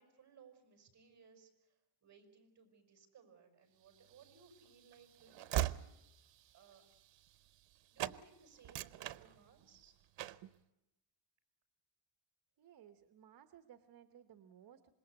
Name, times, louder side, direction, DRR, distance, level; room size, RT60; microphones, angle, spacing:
voice 1, 0.0-5.8 6.5-6.8 7.9-9.9, right 6 dB, 40° right, 5 dB, 5.7 m, -63 dB
Train / Slam, 4.1-7.7 8.0-8.2 8.6-9.8 10.2-10.5, right 13 dB, 80° right, 0.8 m, -41 dB
voice 2, 12.6-14.9, right 10 dB, 55° right, 8 dB, 1.2 m, -60 dB
26.5 x 21.5 x 8.1 m, 0.94 s
cardioid pair, 160°, 43 cm